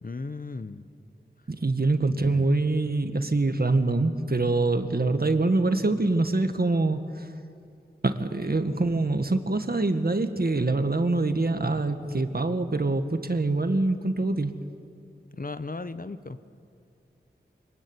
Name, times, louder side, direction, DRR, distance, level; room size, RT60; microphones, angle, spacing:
voice 1, 0.0-0.9 2.1-2.5 15.3-16.4, left 3 dB, 45° left, 12 dB, 1.1 m, -36 dB
voice 2, 1.5-7.3 8.0-14.5, right 2 dB, 50° right, 8 dB, 1.8 m, -25 dB
24.5 x 22.5 x 9.9 m, 2.6 s
wide cardioid pair, 55°, 19 cm